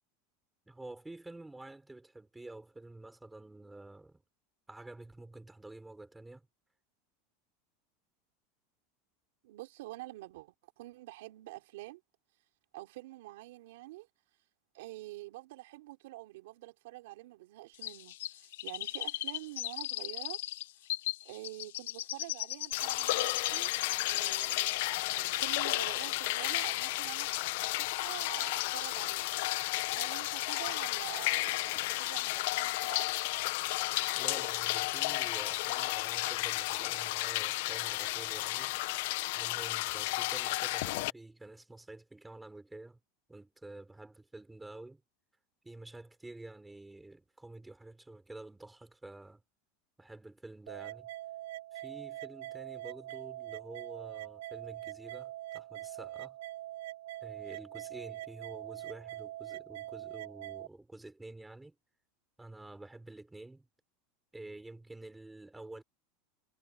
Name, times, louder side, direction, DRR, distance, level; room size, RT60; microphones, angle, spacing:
voice 1, 0.7-4.2 4.7-6.5 34.2-38.8 39.3-43.0 43.3-45.0 45.6-49.4 50.0-51.1 51.7-56.4 57.2-61.7 62.4-63.7 64.3-65.8, right 2 dB, 5° right, 4.7 m, -49 dB
voice 2, 9.4-12.0 12.7-14.1 14.7-20.4 21.2-23.7 24.0-27.3 27.8-29.5 29.9-33.1, right 18 dB, 65° right, 3.7 m, -47 dB
Chirp tweet, 17.8-24.9 25.2-26.1 26.3-26.4, left 15 dB, 90° left, 1.1 m, -38 dB
sound 1, 22.7-41.1, left 21 dB, 55° left, 0.4 m, -33 dB
sound 2, 50.7-60.7, right 14 dB, 90° right, 6.2 m, -43 dB
supercardioid pair, 175°, 0 cm